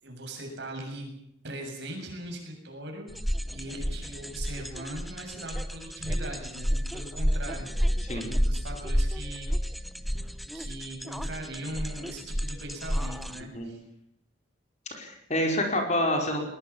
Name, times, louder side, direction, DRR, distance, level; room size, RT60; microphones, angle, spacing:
voice 1, 0.0-1.1 1.4-3.1 3.5-9.8 10.5-13.8, right 1 dB, 55° right, 2 dB, 7.3 m, -40 dB
sound 1, 3.1-13.4, equal, ahead, 0.9 m, -30 dB
voice 2, 14.9-16.5, left 1 dB, 35° left, 3 dB, 5.0 m, -27 dB
21.5 x 21.0 x 7.2 m, 0.77 s
head